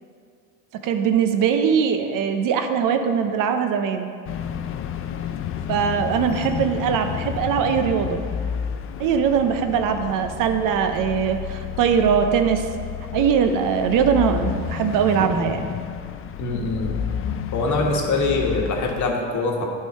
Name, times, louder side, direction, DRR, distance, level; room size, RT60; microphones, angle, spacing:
voice 1, 0.8-4.1 5.7-8.2 9.0-12.7 13.1-15.7, right 7 dB, 60° right, 7 dB, 0.7 m, -21 dB
sound 1, 4.3-19.1, left 8 dB, 35° left, 0.4 m, -31 dB
voice 2, 16.4-17.0 17.5-19.7, left 3 dB, 55° left, 1 dB, 1.4 m, -23 dB
8.9 x 3.8 x 5.3 m, 2.2 s
supercardioid pair, 95°, 36 cm